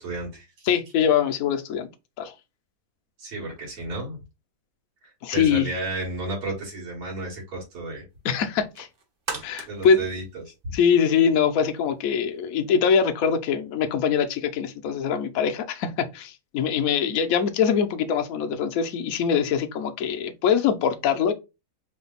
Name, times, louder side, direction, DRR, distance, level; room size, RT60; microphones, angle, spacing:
voice 1, 0.0-0.7 3.2-4.2 5.3-8.1 9.6-10.5, right 2 dB, 85° right, 3.0 m, -33 dB
voice 2, 0.7-1.9 2.2-2.3 5.2-5.7 8.2-8.9 9.4-10.0 10.7-21.3, left 7 dB, 65° left, 0.9 m, -23 dB
sound 1, 8.4-11.2 11.6-11.7, right 4 dB, 50° right, 0.6 m, -38 dB
5.0 x 2.2 x 3.9 m
omnidirectional pair, 2.1 m